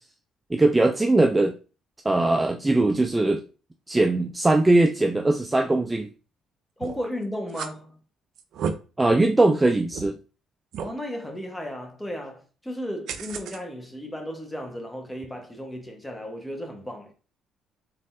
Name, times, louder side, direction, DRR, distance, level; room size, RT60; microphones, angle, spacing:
voice 1, 0.5-1.5 2.0-3.4 3.9-6.1 9.0-10.2, right 2 dB, 15° right, 0.4 m, -20 dB
voice 2, 6.8-8.0 10.8-17.1, equal, 10° left, 1.1 m, -34 dB
sound 1, 6.8-7.1 7.5-7.7 8.4-8.7 9.3-9.4 9.9-10.1 10.7-10.9 13.1-13.6, right 6 dB, 70° right, 0.5 m, -32 dB
4.0 x 3.6 x 2.6 m
cardioid pair, 100°, 0 cm